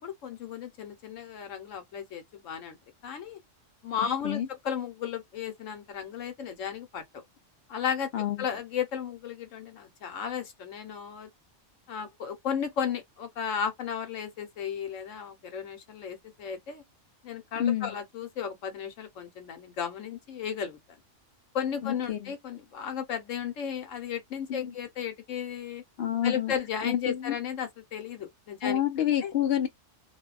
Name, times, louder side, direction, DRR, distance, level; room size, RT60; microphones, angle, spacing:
voice 1, 0.0-2.8 3.0-3.4 3.8-7.0 7.7-8.1 8.4-11.3 11.9-16.8 17.2-20.8 21.5-25.8 26.2-28.8 29.2-29.3, left 8 dB, 85° left, 1.2 m, -34 dB
voice 2, 17.6-17.9 21.8-22.3 24.5-24.7 26.0-26.5 26.8-27.4 28.6-29.7, left 10 dB, 60° left, 0.7 m, -28 dB
2.7 x 2.2 x 2.3 m
omnidirectional pair, 1.3 m